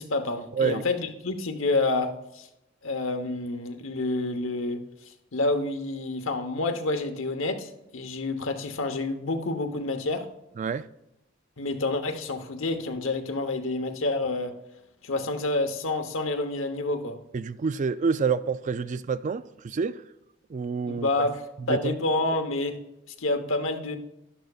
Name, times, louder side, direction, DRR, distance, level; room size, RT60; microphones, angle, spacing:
voice 1, 0.0-2.5 2.8-4.8 5.3-10.2 11.6-14.5 15.0-17.2 20.9-22.8 23.2-24.0, left 2 dB, 75° left, 1.0 m, -28 dB
voice 2, 0.5-0.8 10.6-10.9 17.3-20.0 20.5-21.1 21.6-21.9, right 5 dB, 40° right, 0.3 m, -28 dB
12.0 x 11.5 x 2.4 m
head